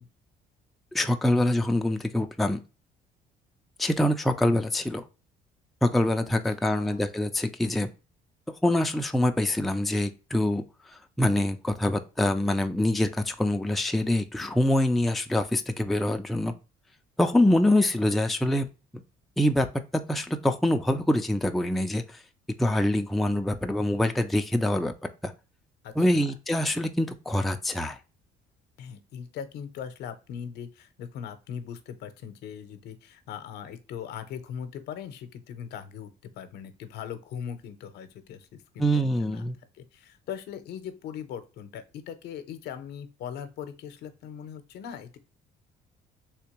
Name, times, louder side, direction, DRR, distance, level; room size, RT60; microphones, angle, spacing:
voice 1, 0.9-2.6 3.8-5.0 5.8-7.9 8.6-10.6 11.2-16.5 17.2-18.7 19.4-19.7 19.9-22.2 22.6-24.9 25.2-25.3 26.0-28.0 38.8-39.6, left 1 dB, ahead, 5 dB, 0.3 m, -25 dB
voice 2, 6.6-7.1 25.8-26.2 28.8-36.1 36.4-39.5 39.8-45.2, left 8 dB, 75° left, 10 dB, 0.7 m, -40 dB
3.4 x 2.9 x 2.9 m, 0.31 s
cardioid pair, 110°, 17 cm